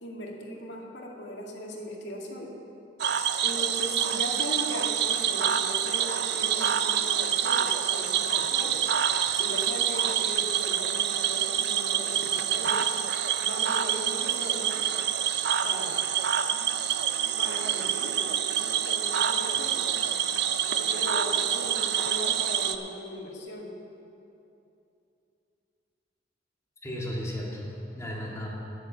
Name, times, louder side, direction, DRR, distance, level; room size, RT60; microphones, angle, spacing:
voice 1, 0.0-2.5 3.4-8.8 9.3-12.9 13.4-14.9 15.6-16.0 17.4-19.9 20.8-23.7, equal, 80° left, -1 dB, 1.9 m, -38 dB
Cricket / Frog, 3.0-22.8, right 9 dB, 65° right, 0.5 m, -27 dB
voice 2, 26.8-28.5, equal, 15° left, -3 dB, 2.0 m, -34 dB
9.6 x 9.5 x 7.3 m, 2.7 s
head